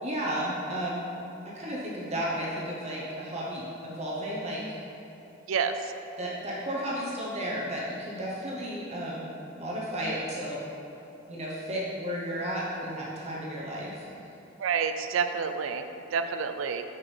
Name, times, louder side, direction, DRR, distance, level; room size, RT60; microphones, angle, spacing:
voice 1, 0.0-1.0 1.5-4.6 6.2-9.3 9.6-10.6 11.3-14.1, equal, 35° right, -6 dB, 0.9 m, -33 dB
voice 2, 14.6-15.8 16.1-16.8, right 6 dB, 70° right, 8 dB, 0.4 m, -28 dB
6.1 x 6.0 x 3.3 m, 2.9 s
head